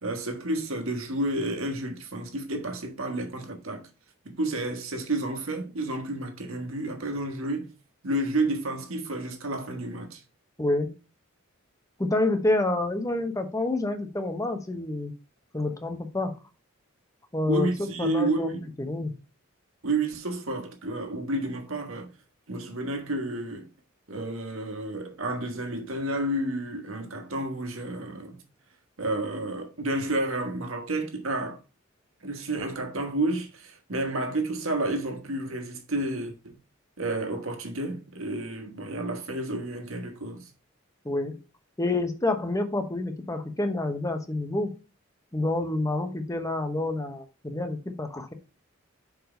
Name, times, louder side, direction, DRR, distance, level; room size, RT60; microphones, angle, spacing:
voice 1, 0.0-3.8 4.2-7.7 8.0-10.2 17.5-18.6 19.8-22.1 22.5-23.7 24.1-28.4 29.0-31.6 32.2-36.5 37.0-40.5, right 2 dB, 80° right, 1.5 m, -30 dB
voice 2, 10.6-10.9 12.0-15.1 15.5-16.3 17.3-18.5 18.8-19.1 41.0-41.4 41.8-44.7 45.3-48.3, left 2 dB, 15° left, 0.9 m, -28 dB
6.0 x 4.7 x 5.2 m
head